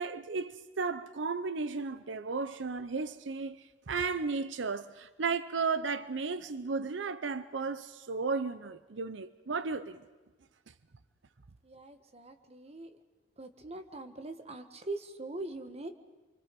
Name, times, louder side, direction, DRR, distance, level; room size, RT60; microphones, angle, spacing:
voice 1, 0.0-10.0, right 4 dB, 85° right, 0.7 m, -34 dB
voice 2, 11.6-12.9 13.4-15.9, right 2 dB, 35° right, 1.5 m, -42 dB
29.0 x 24.5 x 5.3 m
head